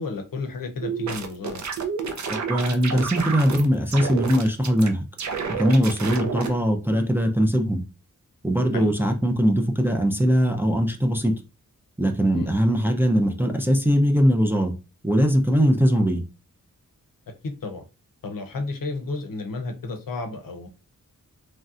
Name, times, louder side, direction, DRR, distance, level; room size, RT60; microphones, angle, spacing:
voice 1, 0.0-1.6 8.7-8.9 12.3-12.5 17.4-17.8 18.2-20.7, left 3 dB, 80° left, 0.7 m, -32 dB
sound 1, 0.8-3.6 3.9-4.9 5.2-6.5, right 5 dB, 55° right, 0.5 m, -30 dB
voice 2, 2.5-5.0 5.6-7.8 8.4-11.3 12.0-14.7 15.0-16.2, equal, 5° right, 0.4 m, -21 dB
3.1 x 2.6 x 2.4 m
wide cardioid pair, 115°, 33 cm